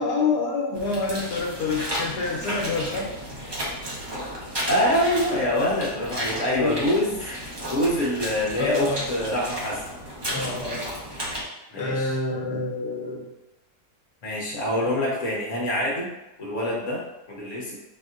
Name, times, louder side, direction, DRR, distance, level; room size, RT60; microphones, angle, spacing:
voice 1, 0.0-3.1 6.6-6.9 8.6-9.1 10.3-10.9 11.7-13.3, left 3 dB, 90° left, -1 dB, 1.3 m, -27 dB
sound 1, 0.7-11.4, equal, 25° right, 0.5 m, -33 dB
voice 2, 4.7-7.2 7.7-9.8 11.7-12.1 14.2-16.1 16.4-17.8, left 1 dB, 55° left, -3 dB, 1.1 m, -25 dB
5.1 x 2.7 x 2.4 m, 0.99 s
omnidirectional pair, 1.7 m